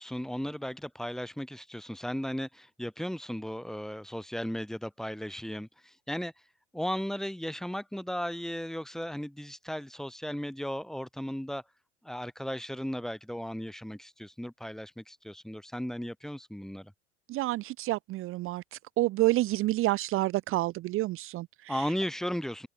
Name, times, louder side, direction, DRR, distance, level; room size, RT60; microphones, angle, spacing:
voice 1, 0.0-6.3 6.7-11.6 12.0-16.9 21.7-22.7, equal, ahead, 4.9 m, -36 dB
voice 2, 17.3-21.9, right 17 dB, 40° right, 1.0 m, -29 dB
figure-of-eight pair, 75°, 32 cm